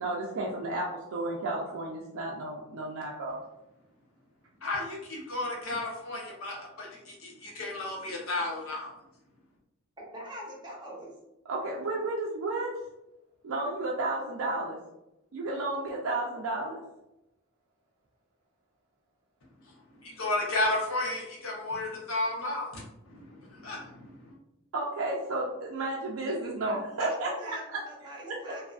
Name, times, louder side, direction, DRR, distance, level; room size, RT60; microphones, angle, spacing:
voice 1, 0.0-3.4 11.5-12.7 13.4-14.8 15.3-16.8 24.7-27.8 28.3-28.4, right 2 dB, 65° right, -3 dB, 0.4 m, -32 dB
voice 2, 4.6-8.9 19.7-19.8 20.0-24.4, left 2 dB, 70° left, -2 dB, 0.8 m, -33 dB
voice 3, 10.0-11.1 26.2-28.6, right 1 dB, 20° right, -4 dB, 0.8 m, -43 dB
2.6 x 2.4 x 2.3 m, 0.90 s
head